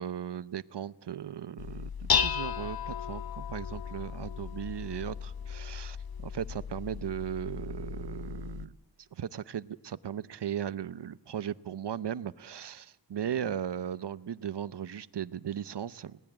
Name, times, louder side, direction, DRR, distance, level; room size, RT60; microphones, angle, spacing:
voice 1, 0.0-6.0 6.2-8.7 9.1-16.2, right 9 dB, 70° right, 17 dB, 0.8 m, -37 dB
Dishes pots and pans, 1.6-8.6, left 7 dB, 55° left, 0.8 m, -35 dB
30.0 x 18.5 x 8.8 m, 1.2 s
wide cardioid pair, 85°, 43 cm